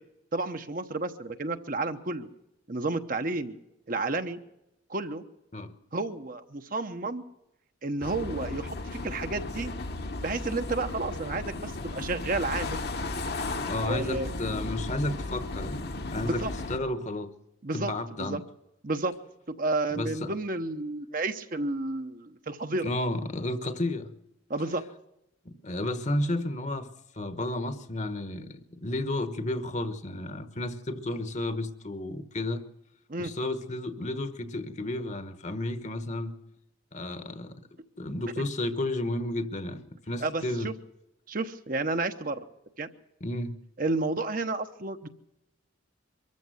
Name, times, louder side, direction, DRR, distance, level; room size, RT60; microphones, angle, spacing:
voice 1, 0.3-2.3 2.7-3.6 3.9-4.4 4.9-5.2 5.9-7.2 7.8-9.7 10.2-12.8 13.8-14.3 16.2-16.5 17.6-17.9 18.2-18.4 18.8-19.2 19.5-22.8 24.5-24.8 33.1-33.3 38.4-38.5 40.2-40.7 41.3-42.5 42.8-42.9 43.8-45.1, right 2 dB, 45° right, 7 dB, 1.0 m, -31 dB
sound 1, 8.0-16.8, left 2 dB, 50° left, 1.3 m, -35 dB
voice 2, 13.7-15.8 16.1-17.3 17.7-18.4 19.9-20.3 22.8-24.1 25.4-26.9 27.1-32.6 33.2-36.4 36.9-37.6 38.0-40.7 43.2-43.6, left 1 dB, 35° left, 11 dB, 1.2 m, -32 dB
24.0 x 14.0 x 7.9 m, 0.88 s
head